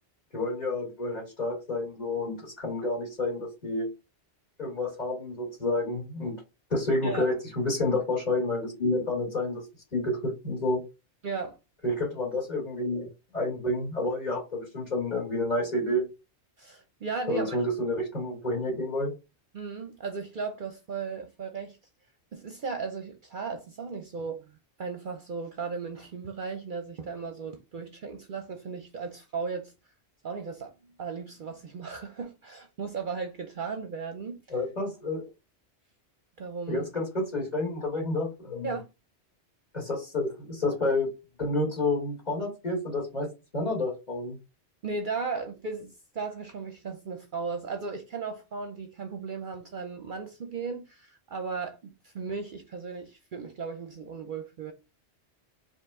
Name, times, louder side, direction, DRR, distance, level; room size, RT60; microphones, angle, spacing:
voice 1, 0.3-3.9 4.6-6.3 6.7-9.6 9.9-10.8 11.8-16.1 17.3-19.1 34.5-35.2 36.7-38.7 39.7-41.1 41.4-43.3 43.5-44.4, left 2 dB, 35° left, 2.4 m, -29 dB
voice 2, 11.2-11.6 16.6-17.6 19.5-21.8 22.3-29.7 30.2-30.7 31.0-34.4 36.4-36.9 38.6-38.8 44.8-54.7, right 4 dB, 55° right, 0.7 m, -36 dB
4.8 x 2.9 x 3.6 m
omnidirectional pair, 1.2 m